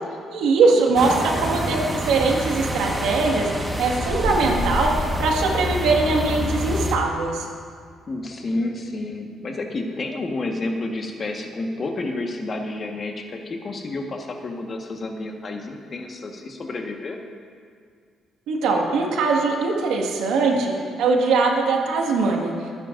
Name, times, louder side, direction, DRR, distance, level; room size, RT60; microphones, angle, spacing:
voice 1, 0.3-3.5 3.8-7.5 18.5-20.7 21.0-22.5, right 4 dB, 85° right, 0 dB, 1.8 m, -21 dB
sound 1, 1.0-7.0, equal, 10° right, 1.4 m, -27 dB
voice 2, 8.1-17.2, left 2 dB, 40° left, 3 dB, 1.4 m, -30 dB
28.5 x 9.7 x 2.6 m, 2.1 s
cardioid pair, 85°, 0 cm